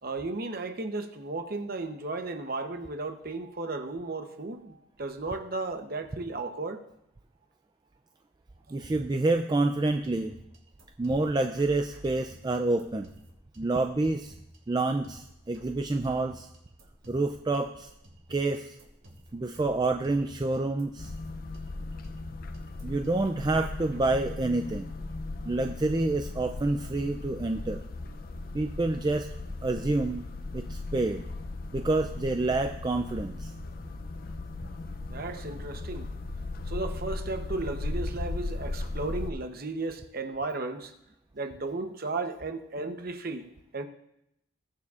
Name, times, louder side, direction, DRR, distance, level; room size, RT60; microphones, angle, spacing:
voice 1, 0.0-6.8 8.8-8.9 35.1-36.1 36.7-40.9 41.3-43.5 43.7-43.8, right 3 dB, 45° right, 7 dB, 0.8 m, -34 dB
voice 2, 8.7-10.4 11.0-13.1 13.6-14.3 14.7-16.5 17.1-17.9 18.3-18.8 19.3-21.1 22.8-24.9 25.5-27.8 28.5-29.3 29.6-30.2 30.5-31.2 31.7-33.5, right 2 dB, 20° right, 6 dB, 0.3 m, -28 dB
sound 1, 9.8-24.4, equal, 75° right, 2.9 m, -52 dB
sound 2, 21.0-39.3, left 2 dB, 45° left, 0.5 m, -37 dB
20.5 x 7.1 x 2.5 m, 0.81 s
head